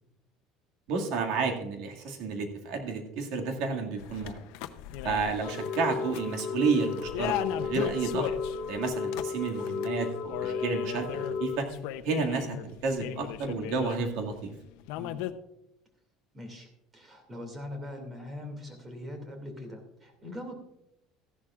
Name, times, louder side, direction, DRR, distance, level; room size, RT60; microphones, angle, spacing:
voice 1, 0.9-4.4 5.0-8.3 8.7-11.7 12.0-14.5, right 4 dB, 65° right, 3 dB, 2.0 m, -31 dB
sound 1, 4.0-14.5 14.8-15.3, left 12 dB, 80° left, 0.7 m, -38 dB
sound 2, 5.4-11.6, left 5 dB, 40° left, 1.4 m, -34 dB
voice 2, 16.3-20.6, left 1 dB, 20° right, 4 dB, 2.4 m, -42 dB
14.5 x 11.0 x 2.4 m, 0.85 s
cardioid pair, 145°, 0 cm